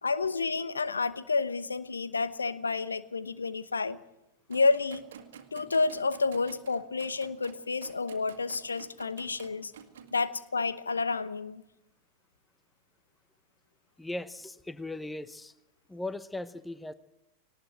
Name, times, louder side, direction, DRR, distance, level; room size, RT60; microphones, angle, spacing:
voice 1, 0.0-4.0 4.5-5.0 5.5-9.7 10.1-11.6, left 4 dB, 75° left, 0.9 m, -30 dB
sound 1, 4.5-10.2, right 8 dB, 60° right, 1.8 m, -50 dB
voice 2, 14.0-15.5 15.9-16.9, left 2 dB, 5° left, 0.9 m, -38 dB
19.0 x 19.0 x 7.8 m
figure-of-eight pair, 90°, 0 cm